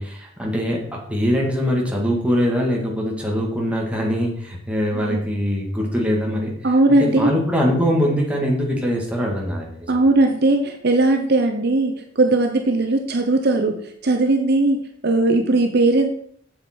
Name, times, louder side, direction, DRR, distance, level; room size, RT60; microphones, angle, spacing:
voice 1, 0.0-10.1, equal, 5° right, -2 dB, 1.9 m, -23 dB
voice 2, 6.6-7.3 9.9-13.8 14.0-14.8 15.0-16.1, right 2 dB, 50° right, 4 dB, 0.9 m, -18 dB
7.7 x 7.3 x 4.4 m, 0.63 s
head